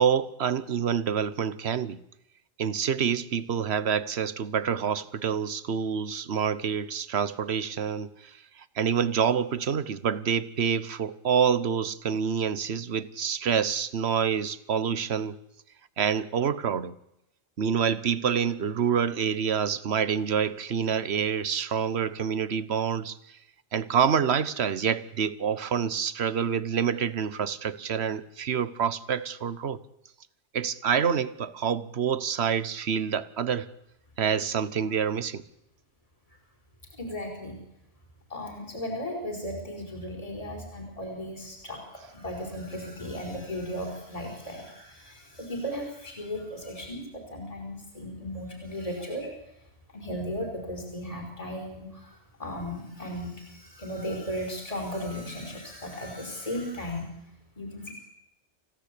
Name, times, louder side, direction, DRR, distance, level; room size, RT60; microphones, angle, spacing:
voice 1, 0.0-2.0 2.6-15.4 16.0-17.0 17.6-23.4 23.7-29.8 30.5-33.7 34.2-35.4, right 7 dB, 65° right, 1.3 m, -27 dB
voice 2, 36.9-37.6 38.3-49.3 49.9-57.1 57.6-57.9, equal, 30° left, 4.7 m, -36 dB
27.5 x 16.5 x 8.5 m
omnidirectional pair, 1.2 m